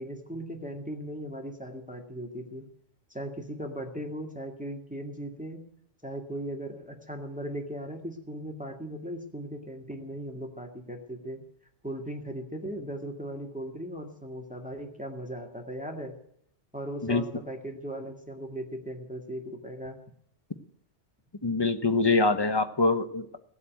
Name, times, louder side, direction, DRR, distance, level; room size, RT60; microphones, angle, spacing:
voice 1, 0.0-2.7 3.1-5.6 6.0-11.4 11.8-16.1 16.7-20.0, right 1 dB, 5° right, 3 dB, 2.0 m, -38 dB
voice 2, 21.4-23.3, left 3 dB, 20° left, 9 dB, 1.1 m, -24 dB
17.0 x 8.4 x 9.2 m, 0.69 s
omnidirectional pair, 1.3 m